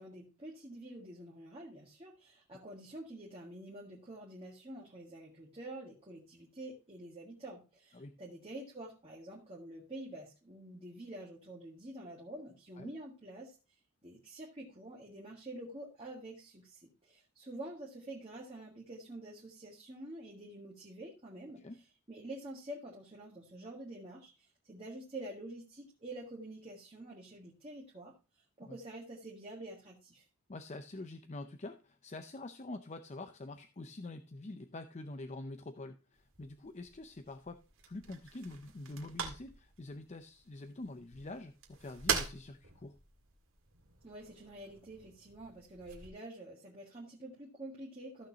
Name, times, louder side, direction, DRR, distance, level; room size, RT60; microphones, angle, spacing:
voice 1, 0.0-13.6 14.0-21.6 22.1-28.1 28.6-30.2 44.0-48.3, right 1 dB, 25° right, -3 dB, 1.7 m, -48 dB
voice 2, 30.5-42.9, left 2 dB, 30° left, 9 dB, 0.5 m, -46 dB
sound 1, 36.1-46.1, right 6 dB, 65° right, 2.0 m, -43 dB
14.5 x 6.5 x 2.8 m, 0.33 s
head